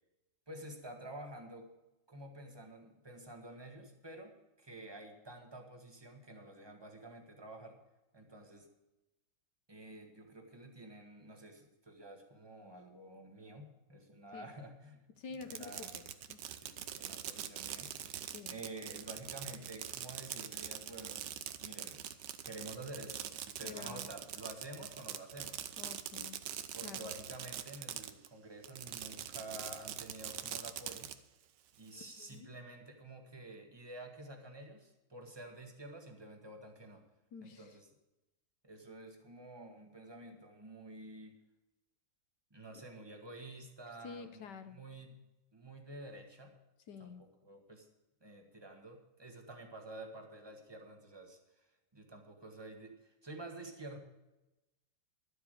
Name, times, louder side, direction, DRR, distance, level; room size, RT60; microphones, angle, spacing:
voice 1, 0.5-1.7 2.1-7.8 8.1-8.7 9.7-15.1 15.4-16.0 16.6-22.1 22.5-25.6 26.7-31.2 31.8-37.0 37.4-37.9 38.6-41.4 42.5-44.4 44.7-45.2 45.5-46.6 47.0-47.9 48.2-51.7 51.9-54.0, right 2 dB, 15° right, 3 dB, 1.7 m, -50 dB
voice 2, 15.2-16.4 18.3-18.5 23.6-24.1 25.8-26.4 26.8-27.1 31.9-32.5 37.3-37.8 44.0-44.8 46.9-47.2, left 5 dB, 60° left, 9 dB, 1.4 m, -49 dB
Fireworks, 15.3-28.3 28.6-31.1, right 10 dB, 65° right, 1.2 m, -43 dB
12.0 x 8.2 x 6.7 m, 0.98 s
omnidirectional pair, 2.3 m